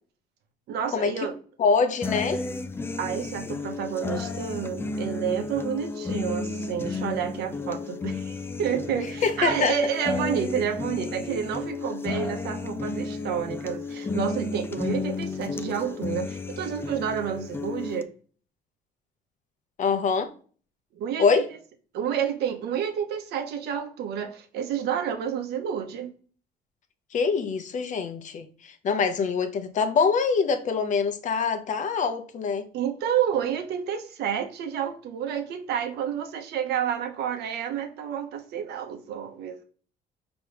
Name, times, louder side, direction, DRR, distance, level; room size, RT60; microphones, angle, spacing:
voice 1, 0.7-1.3 3.0-18.1 20.9-21.4 21.9-26.1 32.7-39.6, right 8 dB, 75° right, 0.9 m, -29 dB
voice 2, 1.6-2.4 9.2-9.8 19.8-20.3 21.2-21.4 27.1-32.7, left 5 dB, 45° left, 0.7 m, -24 dB
sound 1, 2.0-18.0, left 4 dB, 15° left, 0.4 m, -32 dB
4.9 x 3.0 x 3.3 m
cardioid pair, 110°, 17 cm